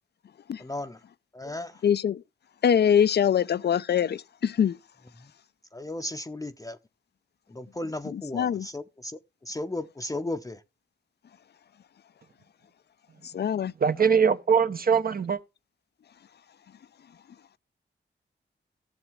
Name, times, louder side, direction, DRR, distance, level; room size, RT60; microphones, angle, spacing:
voice 1, 0.6-1.0 1.4-1.7 5.7-6.8 7.6-9.1 9.5-10.6, left 1 dB, 15° left, 0.7 m, -35 dB
voice 2, 1.8-2.2 2.6-4.8 8.0-8.7 13.3-13.7, left 8 dB, 60° left, 0.5 m, -23 dB
voice 3, 13.8-15.4, right 6 dB, 50° right, 0.9 m, -22 dB
15.0 x 7.1 x 3.5 m
cardioid pair, 60°, 19 cm